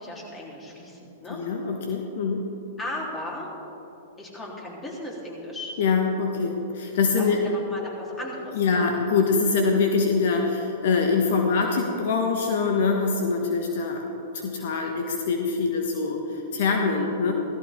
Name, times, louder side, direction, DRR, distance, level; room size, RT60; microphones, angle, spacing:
voice 1, 0.0-1.4 2.8-3.5 4.2-5.7 7.2-8.9, left 1 dB, 20° left, -3 dB, 3.8 m, -36 dB
voice 2, 1.3-2.4 5.8-7.4 8.5-14.0 14.3-17.3, left 4 dB, 65° left, 2 dB, 1.3 m, -24 dB
16.5 x 14.5 x 3.8 m, 2.9 s
hypercardioid pair, 110°, 0 cm